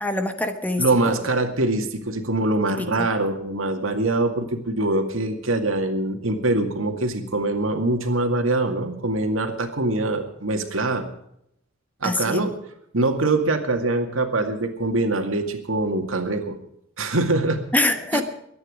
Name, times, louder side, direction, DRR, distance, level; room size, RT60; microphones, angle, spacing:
voice 1, 0.0-1.1 2.8-3.1 12.0-12.5 17.7-18.2, left 1 dB, 10° left, 7 dB, 1.2 m, -24 dB
voice 2, 0.8-11.1 12.0-12.5 12.9-16.5 17.0-17.6 18.1-18.2, right 2 dB, 80° right, 5 dB, 2.2 m, -23 dB
23.5 x 9.6 x 5.1 m, 0.75 s
head